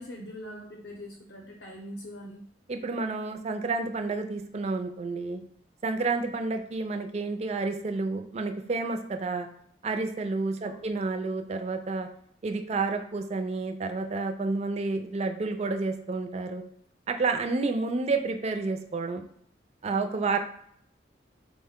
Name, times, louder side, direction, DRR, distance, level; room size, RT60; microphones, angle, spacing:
voice 1, 0.0-2.4 10.6-10.9, equal, 60° left, 1 dB, 0.6 m, -42 dB
voice 2, 2.7-5.4 5.8-9.5 9.8-12.1 12.4-16.6 17.1-19.2 19.8-20.4, right 3 dB, 35° right, 6 dB, 0.3 m, -30 dB
4.1 x 2.1 x 3.6 m, 0.67 s
head